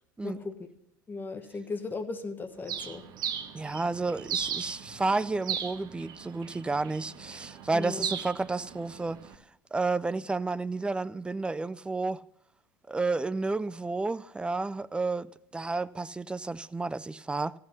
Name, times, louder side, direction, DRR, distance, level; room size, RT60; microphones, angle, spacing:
voice 1, 0.2-0.5 1.1-3.0 7.7-8.1, left 3 dB, 15° left, 1.2 m, -36 dB
Bird, 2.7-9.3, right 8 dB, 40° right, 1.2 m, -38 dB
voice 2, 3.5-9.2 9.7-12.2 12.9-15.3 15.5-17.5, right 3 dB, 10° right, 0.4 m, -31 dB
14.0 x 8.4 x 5.6 m
figure-of-eight pair, 70°, 11 cm